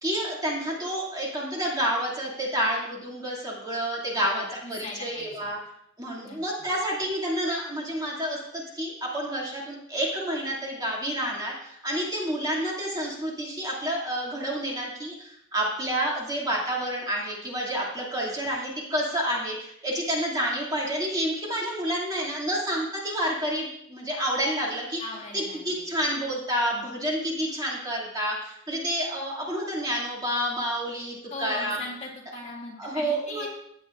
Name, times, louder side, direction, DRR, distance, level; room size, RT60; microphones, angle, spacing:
voice 1, 0.0-5.6 6.0-25.0 25.3-31.8 32.8-33.5, equal, 20° right, -4 dB, 2.5 m, -29 dB
voice 2, 4.1-5.5 6.2-6.4 25.0-26.0 31.3-33.5, left 2 dB, 35° left, -3 dB, 2.0 m, -39 dB
16.0 x 8.4 x 2.5 m, 0.73 s
head